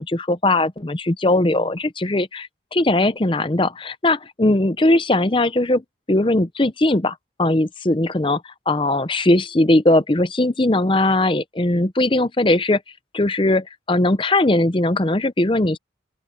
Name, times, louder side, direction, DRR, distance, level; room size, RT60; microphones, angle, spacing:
voice 1, 0.0-5.8 6.1-12.8 13.1-15.8, left 2 dB, 25° left, 0.7 m, -19 dB
open air
head